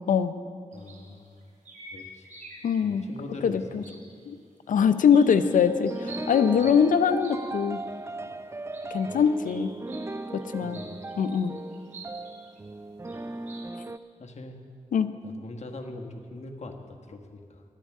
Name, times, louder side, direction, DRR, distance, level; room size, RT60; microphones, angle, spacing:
voice 1, 0.7-1.4 1.9-2.3 2.8-3.9 4.7-4.8 10.6-11.1 14.2-14.6 15.2-17.6, left 2 dB, 60° left, 3 dB, 1.5 m, -42 dB
sound 1, 0.7-2.8 3.1-4.2 4.7-5.6 5.8-7.4 7.7-7.9 8.7-10.1 10.4-10.5 10.7-12.6 13.0-13.2 13.5-13.6, right 3 dB, 75° right, 2.6 m, -47 dB
voice 2, 2.6-3.0 3.4-3.8 4.3-4.4 4.7-7.8 8.9-9.7 10.3-10.8 11.2-11.5 14.9-15.1, left 7 dB, 85° left, 11 dB, 0.6 m, -22 dB
sound 2, 5.3-14.0, right 2 dB, 20° right, 0.4 m, -38 dB
19.0 x 12.5 x 3.7 m, 2.2 s
cardioid pair, 50°, 13 cm